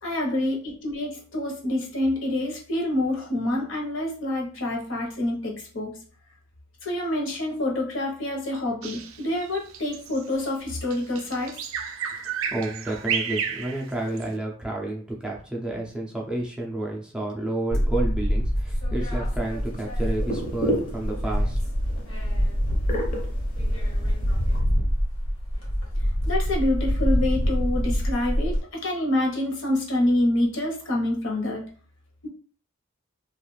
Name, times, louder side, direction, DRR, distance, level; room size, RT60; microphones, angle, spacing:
voice 1, 0.0-5.9 6.8-11.6 26.2-31.6, left 1 dB, 65° left, -2 dB, 0.9 m, -27 dB
Bird vocalization bird call bird song, 8.8-14.3, right 7 dB, 70° right, 0.3 m, -32 dB
voice 2, 12.5-21.6, right 2 dB, 5° right, -2 dB, 0.4 m, -30 dB
sound 1, 17.7-20.6 20.9-28.6, equal, 80° left, 1.2 m, -25 dB
sound 2, 19.4-24.6, equal, 40° left, 0.7 m, -33 dB
2.4 x 2.3 x 3.1 m, 0.43 s
head